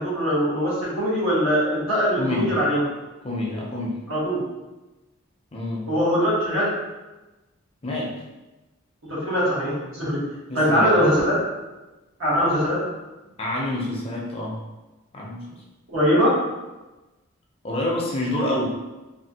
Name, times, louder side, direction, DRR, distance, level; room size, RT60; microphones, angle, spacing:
voice 1, 0.0-2.8 4.1-4.4 5.9-6.7 9.1-10.2 10.5-11.4 12.2-12.8 15.9-16.3, equal, 70° right, -8 dB, 1.4 m, -21 dB
voice 2, 2.2-2.6 3.2-4.0 5.5-5.9 7.8-8.1 10.5-10.9 13.4-14.6 15.1-15.6 17.6-18.7, left 1 dB, 25° left, -3 dB, 0.5 m, -27 dB
3.4 x 2.4 x 2.7 m, 1.1 s
head